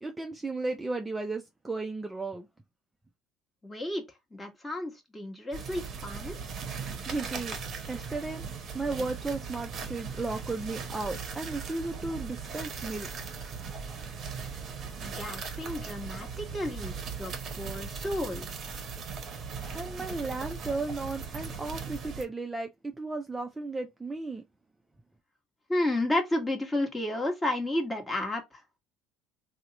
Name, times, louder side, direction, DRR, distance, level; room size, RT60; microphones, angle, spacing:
voice 1, 0.0-2.5 7.0-7.6 7.9-8.4 8.7-13.1 19.7-24.4, right 3 dB, 15° right, 0.4 m, -34 dB
voice 2, 3.6-6.4 15.0-18.5 25.7-28.6, left 1 dB, 15° left, 1.1 m, -32 dB
sound 1, 5.5-22.3, right 5 dB, 45° right, 0.7 m, -38 dB
2.9 x 2.1 x 3.7 m
supercardioid pair, 95°, 0 cm